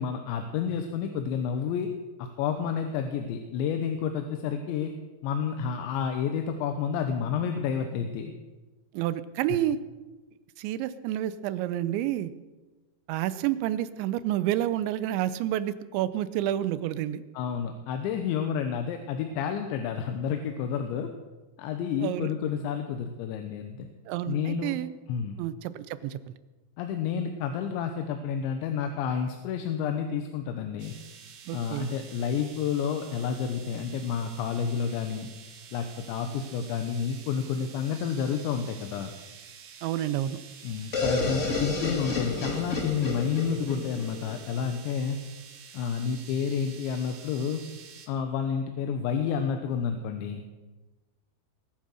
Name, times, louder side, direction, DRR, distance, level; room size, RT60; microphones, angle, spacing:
voice 1, 0.0-1.9 2.2-4.9 5.2-8.3 17.3-21.1 21.6-23.9 24.3-24.7 25.1-25.4 26.8-30.9 31.5-35.3 35.7-39.1 40.6-45.2 45.7-47.6 48.1-50.4, left 7 dB, 85° left, 6 dB, 3.2 m, -30 dB
voice 2, 8.9-9.8 10.6-12.3 13.1-17.2 22.0-22.3 24.1-24.9 25.4-26.3 31.5-31.9 39.8-40.4, right 12 dB, 85° right, 15 dB, 3.0 m, -29 dB
sound 1, 30.8-48.1, right 7 dB, 65° right, 3.3 m, -49 dB
sound 2, 40.9-44.7, left 3 dB, 50° left, 0.8 m, -31 dB
21.0 x 9.5 x 6.5 m, 1.2 s
omnidirectional pair, 5.2 m